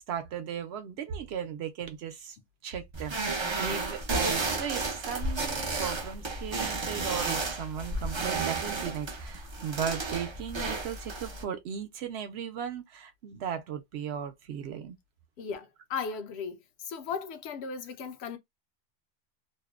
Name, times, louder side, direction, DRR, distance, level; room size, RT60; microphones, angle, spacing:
voice 1, 0.1-2.4 2.6-15.0, right 8 dB, 70° right, 0.8 m, -36 dB
sound 1, 2.9-11.4, right 3 dB, 45° right, 0.3 m, -32 dB
voice 2, 15.4-18.4, left 6 dB, 70° left, 0.8 m, -36 dB
2.6 x 2.1 x 2.3 m
omnidirectional pair, 1.2 m